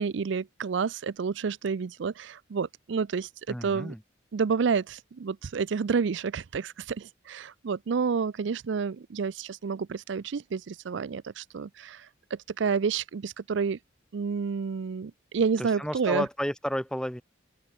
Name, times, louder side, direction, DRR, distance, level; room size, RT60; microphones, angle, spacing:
voice 1, 0.0-3.9 4.3-13.8 14.1-16.3, right 5 dB, 65° right, 0.4 m, -29 dB
voice 2, 3.5-4.0 15.6-17.2, equal, 5° left, 5.2 m, -32 dB
open air
head